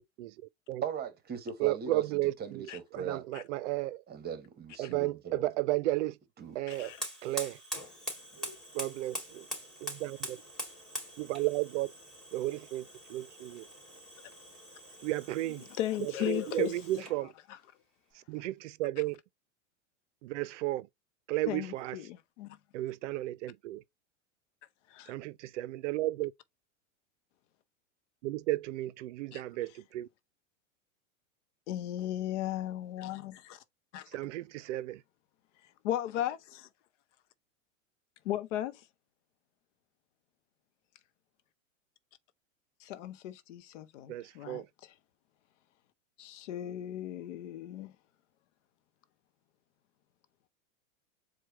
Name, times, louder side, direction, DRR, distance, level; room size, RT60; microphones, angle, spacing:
voice 1, 0.8-3.2 4.1-5.5 6.4-6.6 8.3-8.6, right 7 dB, 25° right, 1.1 m, -39 dB
voice 2, 1.6-2.7 2.9-4.0 4.8-6.2 6.6-6.9 7.2-7.6 8.7-9.4 9.8-10.4 11.2-11.9 12.3-13.6 15.0-15.6 16.0-17.3 18.3-18.5 18.8-19.2 20.2-20.9 21.3-22.0 22.7-23.8 25.1-26.3 28.2-30.1 34.1-35.0 44.1-44.7, right 17 dB, 65° right, 0.5 m, -33 dB
voice 3, 6.7-7.1 15.7-16.8 17.2-17.6 21.5-22.6 24.9-25.0 29.3-29.4 31.7-33.6 33.9-34.3 35.8-36.7 38.2-38.8 42.8-44.9 46.2-47.9, left 12 dB, 65° left, 0.7 m, -36 dB
Fire, 6.7-17.2, equal, ahead, 2.4 m, -44 dB
4.6 x 2.3 x 4.3 m
hypercardioid pair, 120°, 39 cm